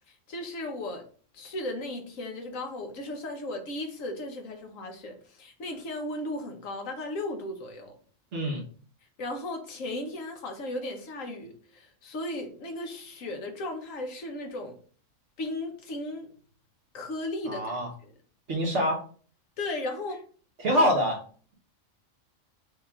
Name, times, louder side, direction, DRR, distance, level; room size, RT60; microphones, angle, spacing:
voice 1, 0.1-1.0 1.3-8.0 9.2-14.7 15.4-16.3 16.9-18.1 19.6-20.2 20.7-20.9, left 2 dB, 80° left, 4 dB, 1.3 m, -36 dB
voice 2, 8.3-8.6 17.4-17.9 18.5-19.0 20.6-21.2, equal, 65° right, 0 dB, 1.3 m, -25 dB
6.4 x 2.9 x 2.4 m, 0.44 s
omnidirectional pair, 1.4 m